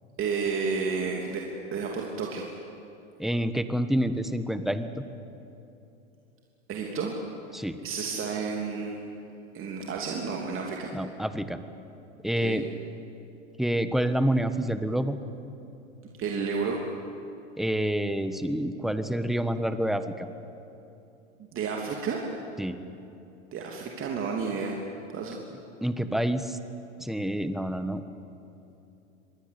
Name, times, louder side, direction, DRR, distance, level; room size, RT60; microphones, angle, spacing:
voice 1, 0.2-1.4 1.7-2.5 6.7-7.2 7.8-9.0 9.5-10.9 12.4-12.6 16.2-16.8 21.5-22.2 23.5-24.7 25.1-25.4, right 5 dB, 35° right, 0 dB, 3.1 m, -31 dB
voice 2, 3.2-5.0 7.5-7.8 10.9-11.6 12.2-12.7 13.6-15.2 17.6-20.3 22.6-22.8 25.8-26.6 27.0-28.0, equal, ahead, 10 dB, 1.4 m, -28 dB
26.5 x 21.0 x 8.5 m, 2.9 s
hypercardioid pair, 100°, 36 cm